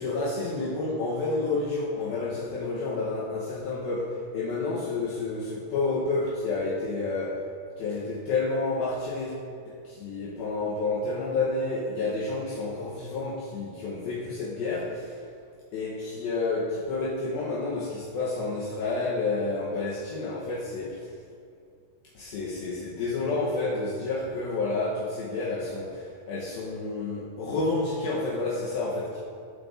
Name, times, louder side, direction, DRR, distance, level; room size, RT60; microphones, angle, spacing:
voice 1, 0.0-7.5 7.8-9.3 9.7-15.2 15.7-21.1 22.1-29.2, left 3 dB, 75° left, -6 dB, 2.7 m, -30 dB
16.5 x 8.6 x 2.6 m, 2.3 s
omnidirectional pair, 4.8 m